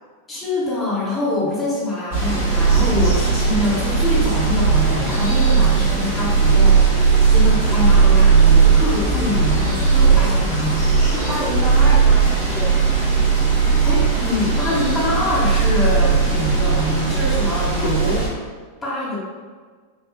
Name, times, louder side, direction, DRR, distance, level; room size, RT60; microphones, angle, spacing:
voice 1, 0.3-10.8 13.8-18.4 18.8-19.2, left 1 dB, 20° left, -8 dB, 1.2 m, -24 dB
sound 1, 2.1-18.3, right 5 dB, 55° right, 1.5 m, -17 dB
voice 2, 11.0-12.8, right 1 dB, 5° right, -10 dB, 1.3 m, -29 dB
5.1 x 2.5 x 2.4 m, 1.5 s
figure-of-eight pair, 90°, 0 cm